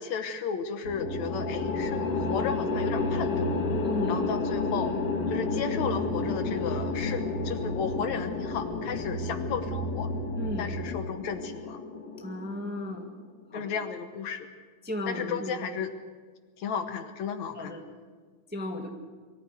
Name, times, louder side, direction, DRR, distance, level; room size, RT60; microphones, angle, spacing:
voice 1, 0.0-3.4 4.1-4.9 5.3-10.1 10.6-11.8 13.5-14.5 15.1-15.9 16.6-17.8, left 6 dB, 70° left, 8 dB, 2.3 m, -34 dB
sound 1, 0.8-11.0, equal, 40° left, 2.2 m, -35 dB
sound 2, 1.0-13.3, left 4 dB, 90° left, 3.3 m, -32 dB
voice 2, 3.8-4.2 10.4-10.7 12.2-13.1 13.5-13.6 14.8-15.6 17.5-17.8 18.5-18.9, left 1 dB, 5° right, 2 dB, 1.5 m, -35 dB
23.0 x 14.5 x 8.0 m, 1.5 s
omnidirectional pair, 3.5 m